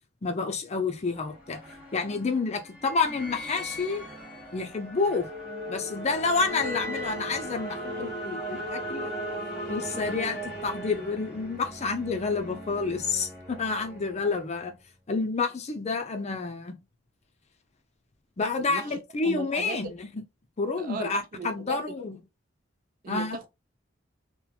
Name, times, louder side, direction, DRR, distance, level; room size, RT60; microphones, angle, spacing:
voice 1, 0.2-1.6 1.9-4.0 4.5-5.3 5.7-9.1 9.7-14.7 15.1-16.8 18.4-20.1 20.6-22.2 23.1-23.4, left 4 dB, 35° left, 0.5 m, -29 dB
sound 1, 0.9-14.7, equal, 5° right, 1.3 m, -38 dB
voice 2, 18.7-19.0 19.2-19.8 20.8-21.9 23.0-23.5, right 4 dB, 45° right, 0.5 m, -37 dB
2.9 x 2.1 x 2.3 m
head